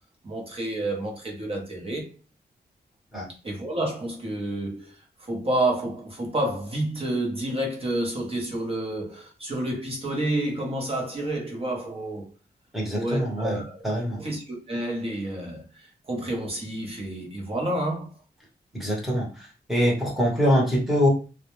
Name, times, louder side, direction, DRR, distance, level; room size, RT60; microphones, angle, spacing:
voice 1, 0.2-2.1 3.4-12.3 12.9-13.8 14.2-18.1, right 1 dB, 35° right, 0.7 m, -29 dB
voice 2, 12.7-14.2 18.7-19.3 19.7-21.1, equal, ahead, 0.9 m, -24 dB
2.1 x 2.1 x 3.0 m
wide cardioid pair, 145°, 17 cm